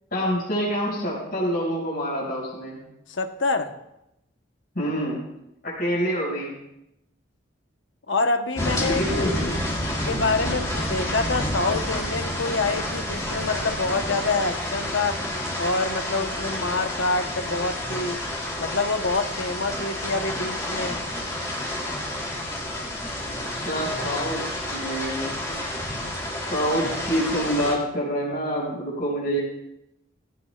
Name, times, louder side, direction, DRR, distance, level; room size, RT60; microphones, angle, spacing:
voice 1, 0.1-2.8 4.7-5.2 5.6-6.5 8.8-9.5 23.3-24.4 24.7-25.6 26.4-29.4, equal, 50° left, -6 dB, 6.1 m, -27 dB
voice 2, 3.1-3.7 8.1-9.6 10.0-15.2 15.6-18.2 18.6-21.0, left 3 dB, 70° left, 6 dB, 1.1 m, -26 dB
sound 1, 8.6-27.7, left 1 dB, 15° left, 3.1 m, -29 dB
19.5 x 17.5 x 2.5 m, 0.85 s
head